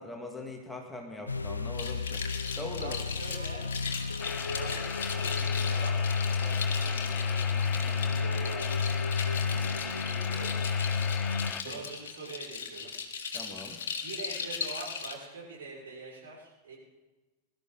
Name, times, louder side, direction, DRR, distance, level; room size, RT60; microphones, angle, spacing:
voice 1, 0.0-2.2 2.6-3.0 3.3-3.4 11.6-11.8 13.3-13.8, left 2 dB, 5° left, 0 dB, 2.1 m, -41 dB
sound 1, 1.3-11.5, left 5 dB, 80° left, 0.5 m, -31 dB
sound 2, 1.7-15.1, left 6 dB, 60° left, 1.9 m, -38 dB
voice 2, 2.8-3.7 4.4-6.0 6.3-8.9 9.2-10.7 11.3-12.9 14.0-16.8, right 3 dB, 65° right, -4 dB, 6.1 m, -44 dB
sound 3, 4.2-11.6, left 7 dB, 25° left, 0.6 m, -39 dB
22.5 x 13.0 x 4.1 m, 1.2 s
figure-of-eight pair, 90°, 0 cm